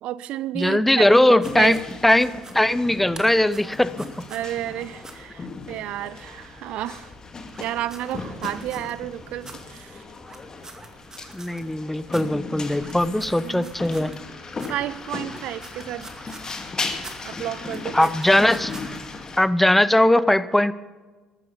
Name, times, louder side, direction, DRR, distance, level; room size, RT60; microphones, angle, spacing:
voice 1, 0.0-1.8 4.3-7.1 7.6-10.0 13.0-13.1 13.4-13.7 14.7-16.4 17.2-18.1, right 13 dB, 55° right, 18 dB, 0.5 m, -32 dB
voice 2, 0.5-1.8 2.0-4.1 11.3-14.1 17.9-18.7 19.4-20.7, left 1 dB, 5° left, 17 dB, 0.7 m, -19 dB
sound 1, 1.1-1.9 2.3-2.6 3.1-4.5 5.0-5.1 7.5-8.9 9.4-9.6 10.2-11.8 12.1-12.2 12.7-14.3 14.5-14.7 15.2-16.6 17.0-17.2 17.5-19.0, right 3 dB, 25° right, 2.3 m, -44 dB
sound 2, 1.4-19.4, left 3 dB, 30° left, 2.2 m, -37 dB
14.0 x 13.5 x 5.8 m, 1.3 s
figure-of-eight pair, 55°, 2 cm